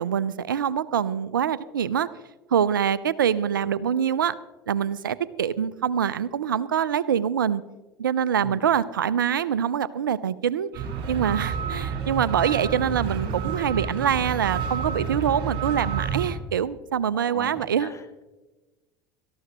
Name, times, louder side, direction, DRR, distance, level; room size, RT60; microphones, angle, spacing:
voice 1, 0.0-2.1 2.5-4.3 4.7-7.6 8.0-17.9, right 8 dB, 90° right, 19 dB, 0.4 m, -25 dB
voice 2, 8.2-8.7 17.1-18.2, left 4 dB, 25° left, 10 dB, 1.5 m, -42 dB
sound 1, 10.7-16.3, right 6 dB, 55° right, 4.4 m, -29 dB
18.5 x 13.5 x 2.9 m, 1.1 s
hypercardioid pair, 75°, 11 cm